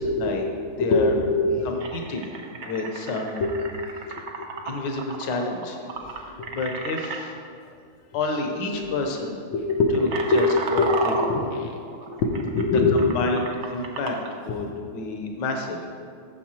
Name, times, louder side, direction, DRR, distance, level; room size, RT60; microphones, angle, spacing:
voice 1, 0.1-0.4 0.8-1.7 3.4-3.5 4.1-4.3 6.4-6.5 8.3-8.8 9.5-13.0 14.5-14.6, left 3 dB, 85° left, 1 dB, 1.6 m, -24 dB
voice 2, 0.8-1.1 1.6-3.4 4.1-4.2 4.7-5.8 6.2-7.4 8.1-9.4 9.9-10.1 10.3-10.5 10.7-11.5 12.9-15.9, left 3 dB, 65° left, 2 dB, 1.5 m, -29 dB
sound 1, 1.8-7.2 8.2-8.4 8.7-9.0 9.5-14.3, right 4 dB, 70° right, 0.6 m, -33 dB
13.5 x 6.9 x 2.9 m, 2.2 s
omnidirectional pair, 2.2 m